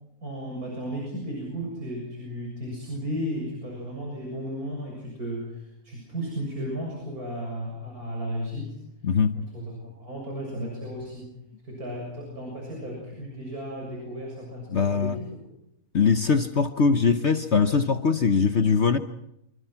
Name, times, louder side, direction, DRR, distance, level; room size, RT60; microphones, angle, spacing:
voice 1, 0.2-8.8 9.3-11.3 11.6-15.3, equal, 80° right, 7.7 m, -34 dB
voice 2, 9.0-9.4 14.7-15.2 15.9-19.0, left 5 dB, 50° left, 1.3 m, -21 dB
27.0 x 25.5 x 5.9 m
omnidirectional pair, 1.5 m